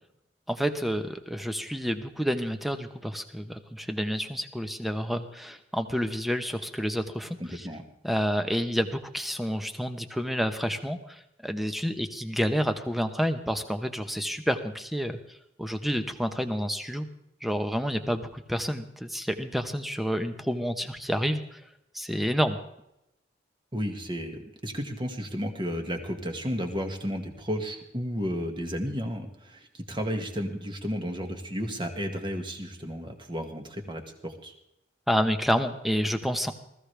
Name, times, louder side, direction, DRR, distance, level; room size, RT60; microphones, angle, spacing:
voice 1, 0.5-7.7 8.0-15.2 15.6-17.1 17.4-21.6 21.9-22.6 35.1-36.5, equal, ahead, 7 dB, 1.0 m, -29 dB
voice 2, 7.4-7.8 23.7-34.5, equal, 25° right, 4 dB, 1.9 m, -33 dB
20.0 x 15.0 x 3.4 m, 0.83 s
head